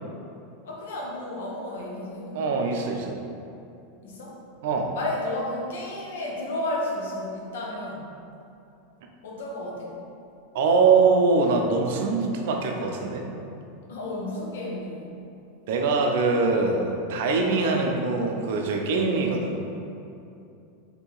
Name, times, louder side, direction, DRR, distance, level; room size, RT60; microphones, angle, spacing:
voice 1, 0.6-2.6 4.0-4.4 4.9-8.1 9.2-10.0 13.9-15.2, left 1 dB, 80° left, -3 dB, 0.7 m, -32 dB
voice 2, 2.3-3.2 4.6-4.9 10.5-13.3 15.7-19.6, right 4 dB, 70° right, 2 dB, 0.4 m, -23 dB
2.7 x 2.6 x 3.9 m, 2.7 s
hypercardioid pair, 115°, 0 cm